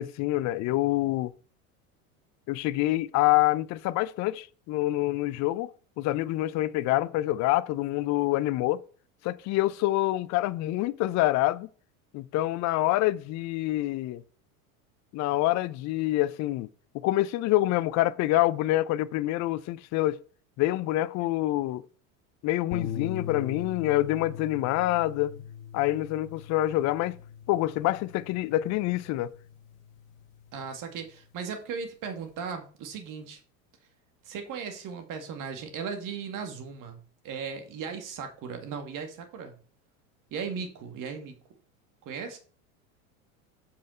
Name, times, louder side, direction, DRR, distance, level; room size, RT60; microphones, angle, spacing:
voice 1, 0.0-1.3 2.5-5.7 6.0-8.8 9.2-11.7 12.1-14.2 15.1-16.7 16.9-20.2 20.6-21.8 22.4-25.4 25.7-27.2 27.5-29.3, left 16 dB, 45° left, 0.6 m, -26 dB
sound 1, 22.7-31.1, left 8 dB, 70° left, 1.5 m, -41 dB
voice 2, 30.5-33.4 34.2-37.0 37.2-39.5 40.3-41.4 42.1-42.4, right 6 dB, 50° right, 2.2 m, -37 dB
7.5 x 5.7 x 4.4 m
hypercardioid pair, 100°, 42 cm